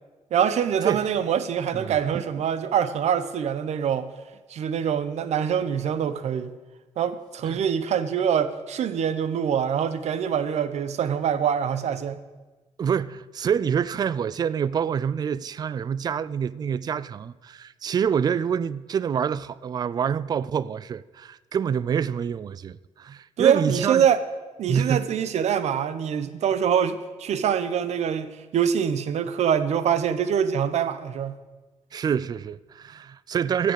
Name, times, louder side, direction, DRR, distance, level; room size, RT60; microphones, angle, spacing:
voice 1, 0.3-4.1 4.5-6.5 7.0-12.2 23.4-24.2 24.6-31.3, right 8 dB, 65° right, 0.9 m, -24 dB
voice 2, 1.7-2.2 7.4-7.6 12.8-24.1 24.7-25.1 31.9-33.7, right 7 dB, 35° right, 0.3 m, -27 dB
15.0 x 6.7 x 8.0 m
cardioid pair, 155°, 12 cm